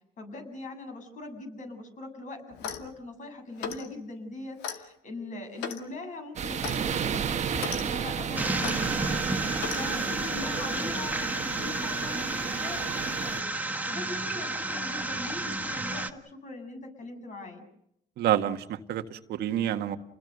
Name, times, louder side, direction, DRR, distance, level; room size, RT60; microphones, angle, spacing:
voice 1, 0.2-17.6, left 2 dB, 50° left, 6 dB, 7.6 m, -41 dB
Clock, 2.5-2.9 3.6-3.9 4.6-4.8 5.6-5.8 6.6-6.8 7.5-7.8 8.6-8.8 9.6-9.8, left 7 dB, 85° left, 2.4 m, -36 dB
sound 1, 6.4-13.4, right 7 dB, 45° right, 1.5 m, -33 dB
sound 2, 8.4-16.1, right 2 dB, 10° right, 1.7 m, -31 dB
voice 2, 18.2-20.0, right 11 dB, 70° right, 7 dB, 1.7 m, -28 dB
30.0 x 20.5 x 6.7 m, 0.76 s
cardioid pair, 110°, 17 cm